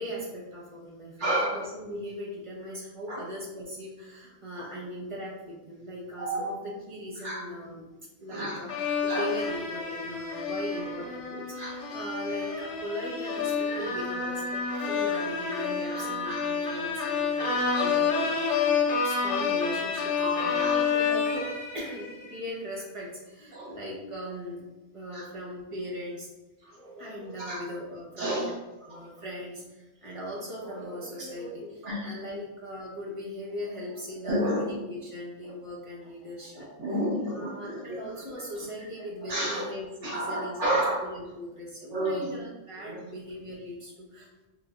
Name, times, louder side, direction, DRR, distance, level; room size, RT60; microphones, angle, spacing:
voice 1, 0.0-7.8 8.2-8.7 9.0-14.6 14.9-18.7 19.0-24.6 24.9-26.3 26.7-28.5 28.8-36.7 37.3-44.4, equal, 30° right, -6 dB, 0.9 m, -39 dB
voice 2, 1.2-1.6 3.1-3.2 4.6-4.7 6.2-6.5 7.2-7.4 8.3-9.3 11.6-11.7 16.0-16.4 20.2-20.9 23.5-23.7 25.1-25.2 26.6-26.8 27.4-27.6 28.2-28.5 31.8-32.2 34.2-34.6 36.5-38.0 39.3-39.6 40.0-41.0 41.9-42.2 42.8-42.9, right 1 dB, 75° right, -7 dB, 1.6 m, -31 dB
sound 1, 8.7-22.4, left 5 dB, 75° left, 1.0 m, -29 dB
3.3 x 3.3 x 2.4 m, 1.1 s
omnidirectional pair, 1.2 m